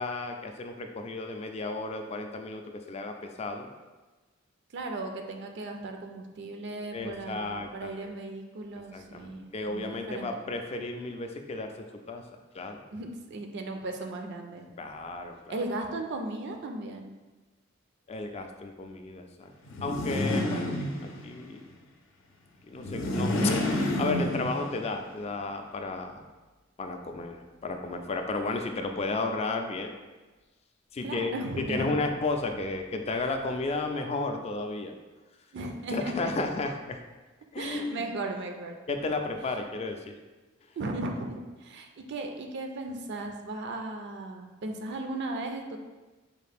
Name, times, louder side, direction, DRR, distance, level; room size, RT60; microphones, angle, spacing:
voice 1, 0.0-2.6 2.9-3.7 6.9-8.1 8.9-12.2 12.5-12.8 14.8-15.6 18.1-19.5 19.8-20.7 21.0-21.6 22.7-23.5 24.0-26.2 26.8-29.9 30.9-34.9 35.9-37.0 37.5-38.0 38.9-40.1, left 3 dB, 30° left, 5 dB, 0.3 m, -33 dB
voice 2, 4.7-10.5 12.9-14.7 15.5-17.1 31.0-32.0 35.5-36.3 37.6-38.8 40.8-45.8, right 2 dB, 60° right, 4 dB, 0.4 m, -36 dB
sound 1, 19.7-21.4 22.7-24.9, left 1 dB, 80° left, 0.6 m, -29 dB
4.7 x 2.5 x 3.4 m, 1.2 s
head